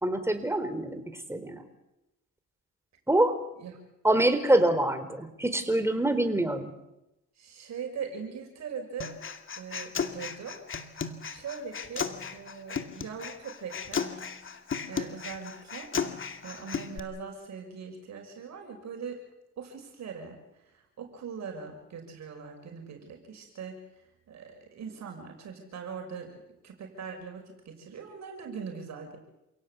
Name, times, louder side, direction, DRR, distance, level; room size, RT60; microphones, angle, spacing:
voice 1, 0.0-1.6 3.1-3.3 4.0-6.7, right 1 dB, 10° right, 9 dB, 4.1 m, -25 dB
voice 2, 7.4-9.2 9.6-11.0 11.3-14.3 14.9-15.9 16.4-19.2 19.6-20.4 20.7-29.2, right 6 dB, 65° right, 3 dB, 6.0 m, -41 dB
Human voice, 9.0-17.0, left 6 dB, 40° left, 2.4 m, -35 dB
28.5 x 17.5 x 8.4 m, 0.91 s
cardioid pair, 90°, 30 cm